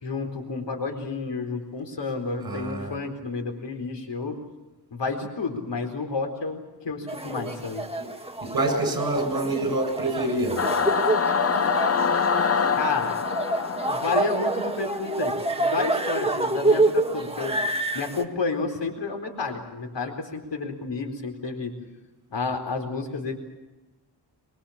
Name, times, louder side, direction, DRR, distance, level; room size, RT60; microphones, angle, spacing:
voice 1, 0.0-4.3 4.9-7.8 12.7-13.2 13.9-15.3 15.6-17.6 17.9-21.7 22.3-23.3, left 4 dB, 85° left, 4 dB, 4.4 m, -30 dB
voice 2, 2.4-3.0 8.0-8.1 8.4-10.7, right 2 dB, 55° right, 5 dB, 7.2 m, -27 dB
sound 1, 7.1-18.2, right 2 dB, 15° right, 1.6 m, -27 dB
Singing / Musical instrument, 10.6-15.2, left 6 dB, 35° left, 0.7 m, -25 dB
25.0 x 22.0 x 7.3 m, 1.1 s
wide cardioid pair, 125°, 42 cm